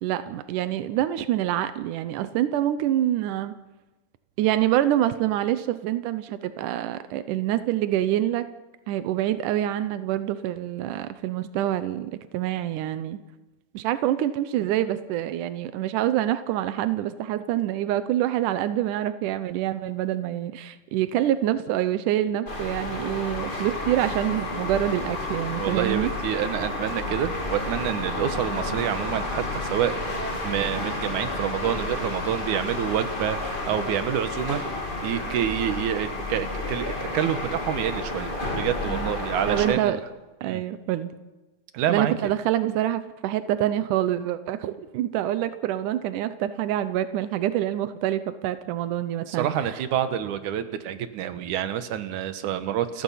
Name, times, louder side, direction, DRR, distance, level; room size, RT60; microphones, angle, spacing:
voice 1, 0.0-3.5 4.4-8.5 8.9-13.2 13.7-26.1 38.9-39.1 39.5-40.0 40.4-41.1 41.9-49.5, right 12 dB, 80° right, 12 dB, 1.8 m, -26 dB
sound 1, 22.5-39.7, left 2 dB, 15° left, 2.0 m, -31 dB
sound 2, 23.4-38.0, left 4 dB, 60° left, 4.1 m, -39 dB
voice 2, 25.6-30.2 30.4-33.4 33.7-34.6 35.0-40.0 40.4-40.6 41.7-42.3 49.3-53.0, right 10 dB, 65° right, 10 dB, 2.2 m, -28 dB
30.0 x 15.5 x 5.7 m, 1.1 s
omnidirectional pair, 4.7 m